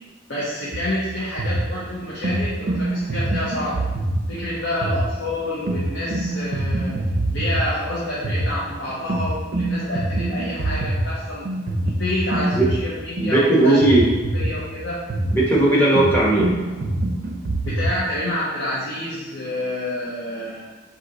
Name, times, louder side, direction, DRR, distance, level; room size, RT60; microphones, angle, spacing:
voice 1, 0.3-3.9 4.3-7.0 7.3-11.5 11.8-14.0 14.3-15.0 17.6-20.6, left 1 dB, 60° left, -7 dB, 0.8 m, -28 dB
sound 1, 0.7-18.0, right 1 dB, 50° right, 0.5 m, -25 dB
voice 2, 13.2-14.0 15.3-16.5, right 2 dB, 10° left, -6 dB, 0.8 m, -17 dB
4.3 x 2.7 x 3.8 m, 1.2 s
head